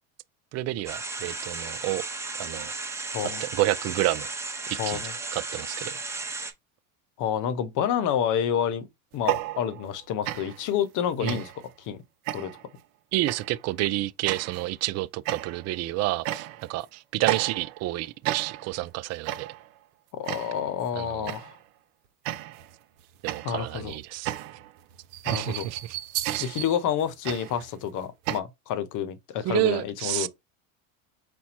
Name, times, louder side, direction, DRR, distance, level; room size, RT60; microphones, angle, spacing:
voice 1, 0.5-2.0 2.4-2.7 3.4-4.3 4.7-5.0 5.3-5.9 11.2-11.4 13.1-19.5 21.0-21.3 23.2-24.3 25.3-25.8 26.3-26.4 29.5-30.3, right 17 dB, 40° right, 0.4 m, -29 dB
sound 1, 0.9-6.5, right 3 dB, 5° right, 0.8 m, -35 dB
voice 2, 3.1-3.5 4.8-5.2 7.2-8.9 9.1-11.5 11.8-12.0 12.3-12.5 20.1-21.6 23.4-24.0 25.2-25.7 26.4-30.3, left 9 dB, 50° left, 0.9 m, -29 dB
sound 2, 9.1-10.0 10.2-10.7 11.3-11.7 12.3-12.7 13.3-13.6 14.3-14.7 15.3-15.8 16.2-16.8 17.2-17.9 18.2-18.8 19.3-19.7 20.3-20.7 21.3-21.6 22.2-22.7 23.3-28.4, right 14 dB, 70° right, 0.8 m, -33 dB
4.3 x 2.2 x 4.4 m
supercardioid pair, 110°, 41 cm